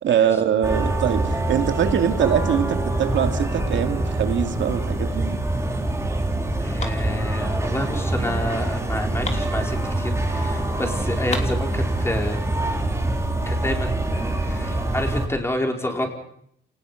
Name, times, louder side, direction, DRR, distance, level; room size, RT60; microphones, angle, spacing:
voice 1, 0.0-5.4, right 8 dB, 70° right, 6 dB, 2.5 m, -23 dB
sound 1, 0.6-15.3, right 2 dB, 15° right, 3.8 m, -25 dB
voice 2, 6.6-12.4 13.5-16.1, left 1 dB, 15° left, 2 dB, 4.7 m, -29 dB
sound 2, 6.8-10.4 10.7-10.8 11.0-12.3, left 3 dB, 35° left, 3.3 m, -37 dB
28.0 x 19.5 x 5.9 m, 0.69 s
cardioid pair, 90°, 20 cm